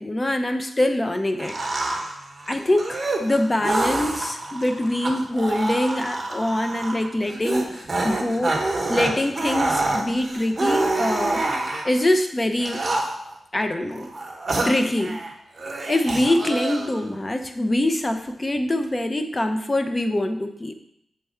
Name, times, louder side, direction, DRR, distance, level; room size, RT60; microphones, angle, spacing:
voice 1, 0.0-1.6 2.5-8.5 8.9-11.4 11.8-12.8 13.5-14.1 14.6-15.2 15.9-20.7, left 1 dB, 25° left, 7 dB, 0.6 m, -24 dB
sound 1, 1.4-12.0 12.6-13.4 13.9-15.3 15.6-17.1, right 2 dB, 35° right, 1.0 m, -27 dB
6.6 x 3.6 x 4.3 m, 0.76 s
wide cardioid pair, 90°, 0 cm